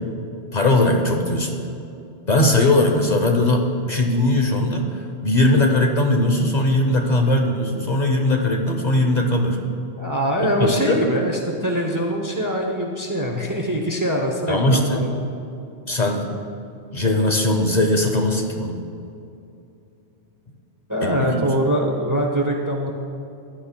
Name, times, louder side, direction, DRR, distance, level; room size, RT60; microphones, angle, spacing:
voice 1, 0.5-1.5 2.3-9.6 10.4-11.0 14.5-15.0 15.9-16.3 16.9-18.8 21.0-21.5, left 1 dB, 45° left, 3 dB, 0.8 m, -19 dB
voice 2, 10.0-15.2 20.9-22.9, equal, 20° right, 1 dB, 0.7 m, -23 dB
15.0 x 9.9 x 2.2 m, 2.7 s
omnidirectional pair, 1.1 m